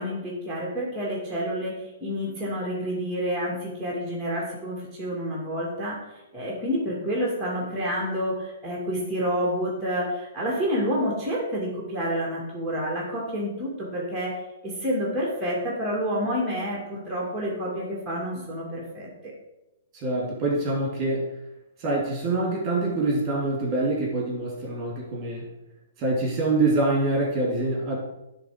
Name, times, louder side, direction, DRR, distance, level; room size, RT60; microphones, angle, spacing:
voice 1, 0.0-6.0 6.3-14.3 14.6-19.3, equal, 10° right, -5 dB, 2.4 m, -29 dB
voice 2, 19.9-21.3 21.8-25.4 26.0-28.0, right 2 dB, 30° right, -3 dB, 2.8 m, -25 dB
10.0 x 3.5 x 5.1 m, 0.95 s
hypercardioid pair, 120°, 0 cm